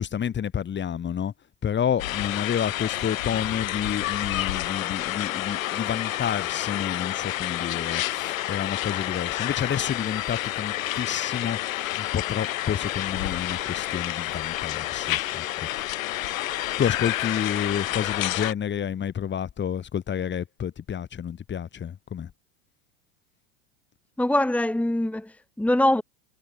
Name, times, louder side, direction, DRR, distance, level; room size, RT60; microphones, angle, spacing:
voice 1, 0.0-1.3 1.6-11.6 12.0-15.7 16.8-22.3, left 8 dB, 25° left, 3.5 m, -29 dB
sound 1, 2.0-18.5, left 15 dB, 75° left, 3.1 m, -29 dB
voice 2, 24.2-26.0, left 1 dB, 5° left, 2.2 m, -23 dB
hypercardioid pair, 105°, 40 cm